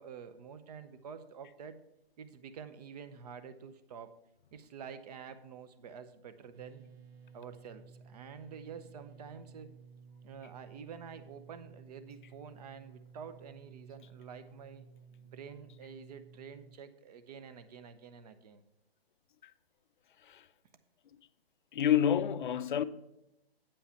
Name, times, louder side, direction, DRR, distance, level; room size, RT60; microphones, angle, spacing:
voice 1, 0.0-1.8 2.2-4.1 4.5-6.8 7.3-9.7 10.2-14.9 15.3-18.6, right 6 dB, 40° right, 0.8 m, -48 dB
sound 1, 6.5-16.8, right 6 dB, 80° right, 0.7 m, -56 dB
voice 2, 21.7-22.8, left 10 dB, 55° left, 0.5 m, -28 dB
8.6 x 5.5 x 5.7 m
hypercardioid pair, 150°, 31 cm